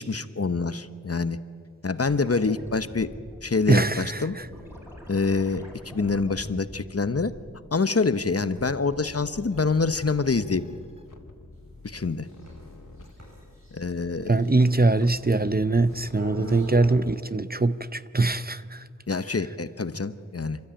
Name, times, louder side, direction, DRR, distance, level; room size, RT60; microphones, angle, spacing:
voice 1, 0.0-1.4 1.8-3.1 3.4-4.4 5.1-7.3 7.7-10.8 11.8-12.3 13.7-14.4 16.4-16.6 19.1-20.6, left 4 dB, 45° left, 0.9 m, -26 dB
sound 1, 2.0-7.8 8.1-10.7 13.1-13.2, equal, 5° right, 5.1 m, -45 dB
voice 2, 3.7-4.5 14.3-18.8, right 3 dB, 30° right, 0.7 m, -22 dB
sound 2, 9.2-16.9, left 2 dB, 75° left, 2.4 m, -48 dB
sound 3, 11.5-17.2, equal, 60° right, 7.9 m, -45 dB
29.0 x 13.0 x 8.9 m
wide cardioid pair, 55°, 32 cm